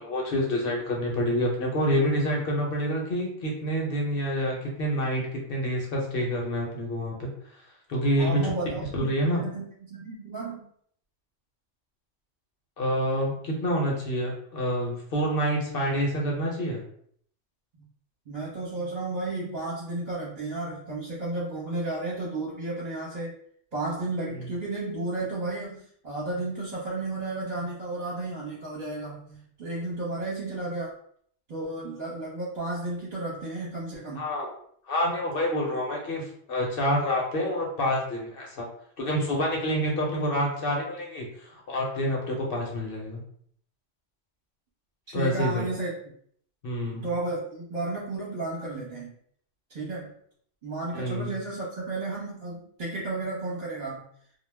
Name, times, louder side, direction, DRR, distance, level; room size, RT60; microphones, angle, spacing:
voice 1, 0.0-7.3 7.9-8.4 8.9-9.4 12.8-16.8 24.3-24.5 34.1-34.5 34.8-38.6 39.0-43.2 45.1-45.6 46.6-47.1 50.9-51.3, equal, 55° left, -1 dB, 0.8 m, -27 dB
voice 2, 8.1-10.7 18.3-23.3 23.7-30.9 31.5-34.2 45.1-45.9 47.0-49.1 49.7-50.1 50.6-54.1, right 2 dB, 45° right, -7 dB, 0.8 m, -33 dB
2.2 x 2.1 x 3.2 m, 0.63 s
omnidirectional pair, 1.2 m